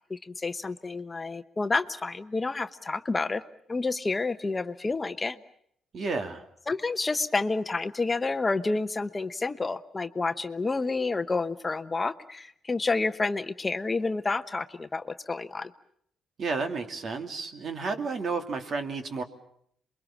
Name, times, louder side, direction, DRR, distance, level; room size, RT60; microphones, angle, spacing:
voice 1, 0.1-3.4 3.7-5.4 6.7-15.7, left 3 dB, 25° left, 10 dB, 1.0 m, -29 dB
voice 2, 5.9-6.4 16.4-19.2, right 4 dB, 50° right, 6 dB, 2.7 m, -31 dB
27.5 x 22.5 x 7.3 m, 0.69 s
cardioid pair, 90°, 0 cm